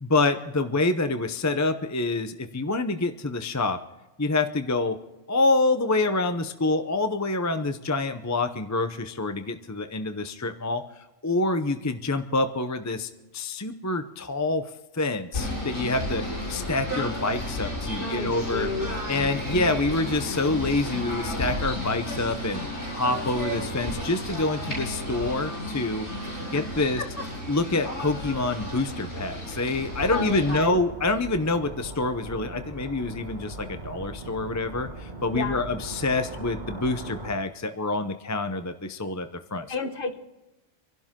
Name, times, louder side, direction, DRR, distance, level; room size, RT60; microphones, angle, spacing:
voice 1, 0.0-3.8 4.2-5.0 5.3-14.6 14.9-18.7 19.1-22.6 22.9-26.1 26.5-27.0 27.5-39.9, left 2 dB, 20° left, 9 dB, 0.6 m, -27 dB
Singing / Bird, 15.3-30.6, left 1 dB, 85° left, 7.7 m, -32 dB
voice 2, 18.0-18.9 26.5-26.6 30.1-30.8 35.3-35.6 39.7-40.2, left 3 dB, 45° left, 6 dB, 1.5 m, -31 dB
sound 1, 30.0-37.3, right 2 dB, 35° right, 1.8 m, -39 dB
26.5 x 12.0 x 3.7 m, 1.0 s
omnidirectional pair, 1.3 m